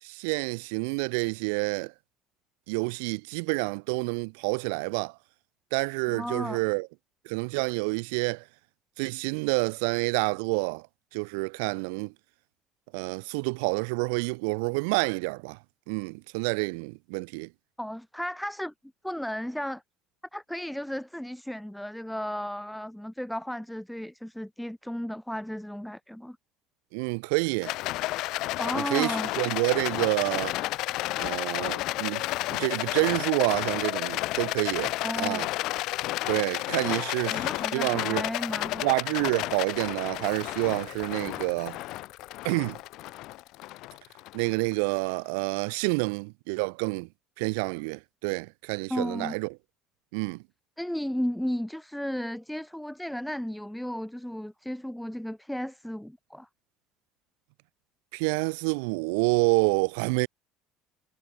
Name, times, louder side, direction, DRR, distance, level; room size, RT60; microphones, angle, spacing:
voice 1, 0.0-1.9 2.7-5.1 5.7-6.9 7.2-8.4 9.0-10.9 11.1-12.1 12.9-15.6 15.9-17.5 26.9-27.7 28.7-30.6 31.2-32.2 32.5-35.5 36.3-37.5 37.7-38.2 38.8-41.8 42.4-42.8 44.3-47.1 47.4-49.5 50.1-50.4 58.1-60.3, right 32 dB, 90° right, 1.3 m, -28 dB
voice 2, 6.1-6.6 17.8-18.7 19.0-19.8 20.3-26.4 28.6-29.3 35.0-35.5 36.8-38.9 48.9-49.4 50.8-56.5, equal, ahead, 5.9 m, -34 dB
Rattle, 27.6-45.0, left 18 dB, 70° left, 3.1 m, -32 dB
supercardioid pair, 100°, 0 cm